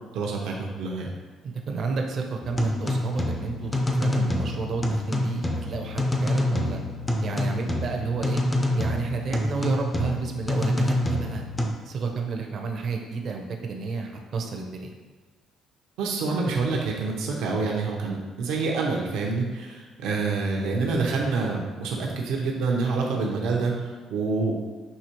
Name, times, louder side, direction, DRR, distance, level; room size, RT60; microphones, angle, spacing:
voice 1, 0.1-1.1 16.0-24.6, right 4 dB, 85° right, -1 dB, 0.7 m, -27 dB
voice 2, 1.4-6.8 7.2-8.4 8.7-11.4 11.9-14.9, right 4 dB, 50° right, 3 dB, 0.6 m, -31 dB
sound 1, 2.4-11.7, left 1 dB, 15° left, 0.4 m, -26 dB
5.7 x 2.8 x 3.0 m, 1.4 s
cardioid pair, 125°, 0 cm